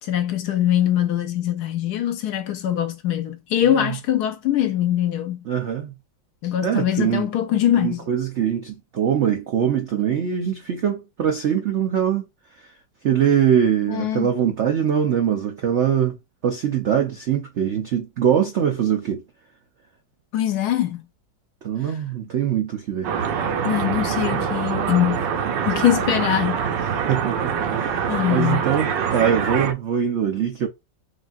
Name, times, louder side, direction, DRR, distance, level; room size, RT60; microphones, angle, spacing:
voice 1, 0.0-5.5 6.4-8.0 13.9-14.3 20.3-21.0 23.6-25.3 25.7-26.6 28.1-28.7, left 11 dB, 70° left, 1.0 m, -22 dB
voice 2, 5.5-5.9 6.6-7.3 7.8-12.2 13.0-16.2 16.4-19.2 21.6-23.1 24.3-24.5 26.9-30.7, right 9 dB, 90° right, 0.6 m, -22 dB
sound 1, 23.0-29.7, right 7 dB, 75° right, 1.4 m, -24 dB
6.3 x 2.4 x 2.6 m
omnidirectional pair, 2.0 m